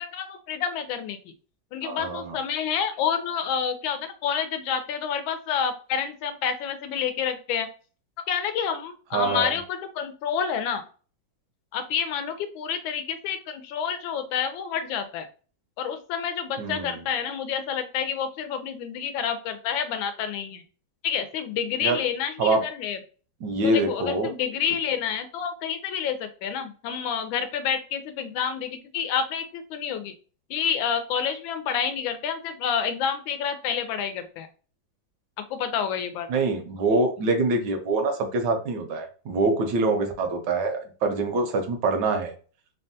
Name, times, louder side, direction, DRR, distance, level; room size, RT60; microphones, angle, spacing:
voice 1, 0.0-1.3 1.7-7.7 8.3-10.8 11.7-15.3 15.8-20.6 21.0-23.0 23.6-30.1 30.5-34.5 35.5-36.3, left 7 dB, 80° left, 9 dB, 1.3 m, -29 dB
voice 2, 1.8-2.4 9.1-9.6 16.6-17.0 21.8-22.0 22.4-22.6 23.4-24.3 36.3-42.3, right 3 dB, 70° right, 5 dB, 1.1 m, -25 dB
3.4 x 2.2 x 2.6 m, 0.38 s
omnidirectional pair, 2.1 m